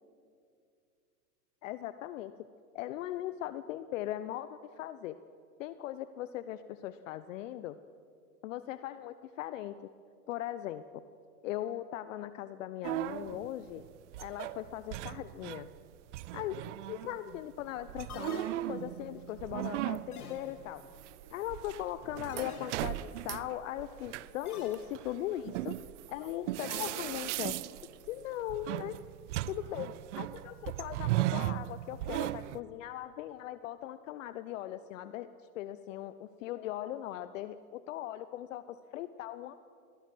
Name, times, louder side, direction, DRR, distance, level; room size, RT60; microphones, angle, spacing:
voice 1, 1.6-2.3 2.7-5.2 5.6-7.8 8.4-9.7 10.3-11.0 11.4-13.8 14.2-15.7 16.3-18.4 18.7-20.8 21.3-25.8 26.1-27.6 28.1-29.0 29.5-35.3 35.5-39.6, left 13 dB, 55° left, 13 dB, 0.9 m, -39 dB
sound 1, 12.8-15.8 16.1-32.6, right 16 dB, 50° right, 0.6 m, -37 dB
sound 2, 18.1-19.1 20.1-20.9 22.3-23.2 24.5-25.0 26.6-27.5, left 4 dB, 75° left, 3.6 m, -46 dB
22.5 x 17.5 x 7.7 m, 2.4 s
hypercardioid pair, 115°, 45 cm